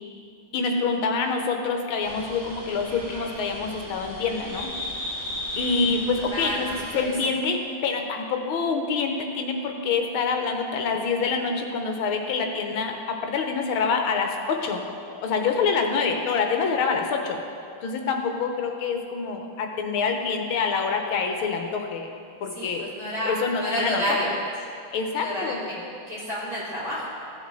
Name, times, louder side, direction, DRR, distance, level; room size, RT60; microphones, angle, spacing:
voice 1, 0.5-4.7 5.6-14.8 15.2-17.4 17.8-22.1 22.4-22.8 23.2-24.0 24.9-25.6, left 5 dB, 85° left, 3 dB, 1.8 m, -26 dB
sound 1, 2.0-7.1, left 1 dB, 55° right, 3.4 m, -35 dB
voice 2, 6.2-6.6 7.0-7.1 22.5-23.3 23.6-24.3 25.1-25.7 26.1-27.0, equal, 35° right, -11 dB, 3.0 m, -29 dB
15.5 x 7.2 x 3.8 m, 2.5 s
omnidirectional pair, 2.3 m